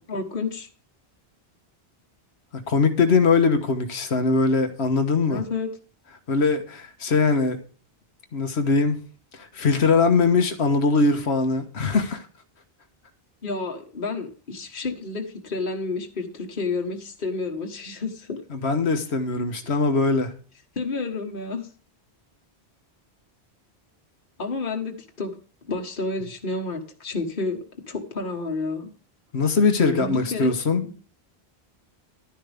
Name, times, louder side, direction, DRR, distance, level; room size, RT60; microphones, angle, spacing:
voice 1, 0.1-0.7 5.3-5.7 13.4-18.4 20.7-21.7 24.4-25.4 25.6-27.6 27.9-28.9 29.8-30.5 30.8-31.0, left 3 dB, 55° left, 1.6 m, -30 dB
voice 2, 2.5-5.4 6.3-7.6 8.3-9.0 9.3-12.2 18.5-20.3 29.3-30.8, left 4 dB, 80° left, 1.5 m, -21 dB
12.0 x 10.5 x 3.5 m
omnidirectional pair, 1.1 m